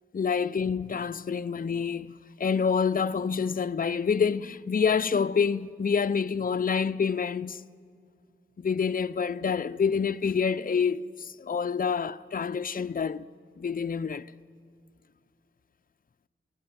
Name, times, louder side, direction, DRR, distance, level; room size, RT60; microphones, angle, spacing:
voice 1, 0.1-7.6 8.6-13.3 13.6-14.3, left 6 dB, 45° left, 0.6 m, -27 dB
29.5 x 16.5 x 9.7 m
wide cardioid pair, 60°, 21 cm